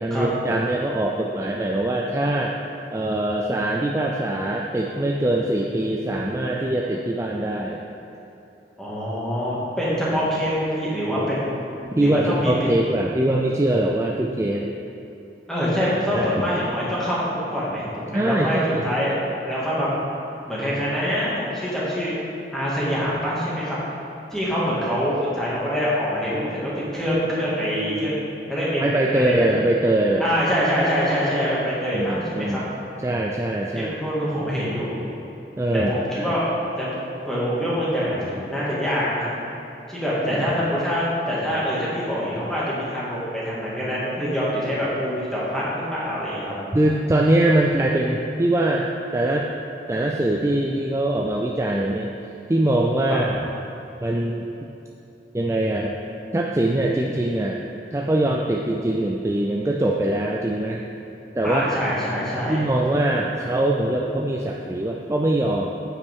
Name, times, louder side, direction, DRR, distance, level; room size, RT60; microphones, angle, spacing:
voice 1, 0.0-2.5 2.9-7.8 12.0-14.7 16.1-16.5 18.1-18.8 28.8-30.3 31.9-32.6 33.0-34.0 35.6-36.2 46.7-48.9 49.1-49.5 49.9-52.1 52.5-53.4 54.0-54.4 55.3-55.9 56.3-57.6 57.9-60.8 61.3-61.6 62.5-65.7, right 1 dB, 15° right, -1 dB, 0.4 m, -22 dB
voice 2, 8.8-11.6 11.9-12.7 15.5-19.9 20.5-22.1 22.5-23.8 24.3-28.2 28.5-29.4 30.2-32.6 33.7-35.0 35.7-36.4 36.8-39.3 39.9-46.5 53.1-53.2 61.4-62.7, equal, 5° left, -9 dB, 2.0 m, -25 dB
9.5 x 8.1 x 3.7 m, 2.9 s
head